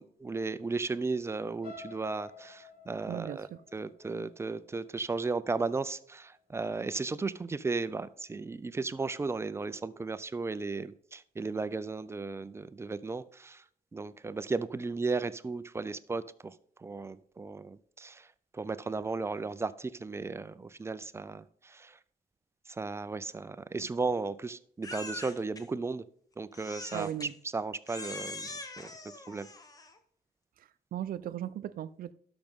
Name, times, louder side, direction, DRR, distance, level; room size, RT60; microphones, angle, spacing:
voice 1, 0.0-3.5 3.7-13.6 13.9-18.3 18.5-22.0 22.7-26.0 26.4-27.1 27.5-28.9 29.3-29.5, right 3 dB, 15° right, 0.4 m, -35 dB
sound 1, 1.6-5.6 6.1-6.4 6.7-6.8, left 3 dB, 60° left, 4.2 m, -51 dB
voice 2, 3.1-3.6 23.8-23.9 26.9-27.3 30.6-32.1, right 11 dB, 60° right, 0.6 m, -38 dB
Crying sobbing, 24.8-25.6 26.5-27.3 27.9-30.0, left 2 dB, 20° left, 1.1 m, -43 dB
12.0 x 6.0 x 3.6 m
cardioid pair, 150°, 16 cm